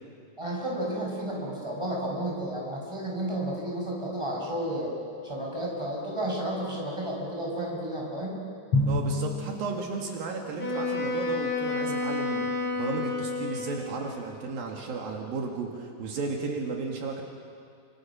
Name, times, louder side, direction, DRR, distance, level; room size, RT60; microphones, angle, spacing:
voice 1, 0.4-8.4, right 1 dB, 5° right, -2 dB, 5.8 m, -32 dB
Drum, 8.7-10.5, left 2 dB, 45° left, 3.8 m, -29 dB
voice 2, 8.9-17.2, right 4 dB, 75° right, 1 dB, 3.6 m, -34 dB
Wind instrument woodwind instrument, 10.6-14.1, left 3 dB, 15° left, 5.6 m, -30 dB
30.0 x 26.5 x 6.2 m, 2.3 s
omnidirectional pair, 4.3 m